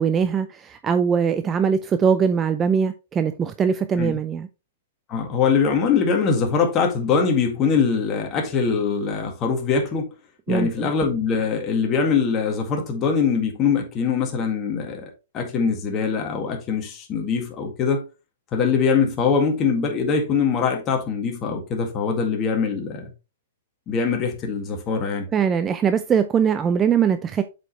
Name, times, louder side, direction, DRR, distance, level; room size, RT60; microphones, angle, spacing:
voice 1, 0.0-4.5 10.5-10.9 25.3-27.4, right 7 dB, 20° right, 0.5 m, -21 dB
voice 2, 5.1-10.1 10.5-18.0 18.5-23.1 23.9-25.3, left 5 dB, 25° left, 2.0 m, -22 dB
7.7 x 5.2 x 3.1 m
hypercardioid pair, 140°, 0 cm